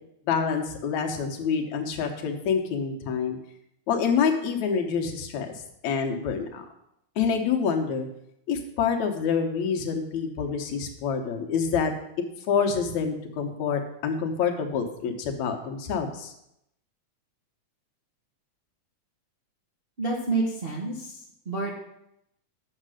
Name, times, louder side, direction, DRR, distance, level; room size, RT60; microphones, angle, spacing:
voice 1, 0.3-3.4 3.9-5.5 5.8-6.7 7.2-8.1 8.5-11.9 12.5-16.3, left 6 dB, 75° left, 4 dB, 2.4 m, -27 dB
voice 2, 20.0-21.7, right 3 dB, 35° right, -3 dB, 0.9 m, -29 dB
8.7 x 6.7 x 6.3 m, 0.79 s
omnidirectional pair, 3.3 m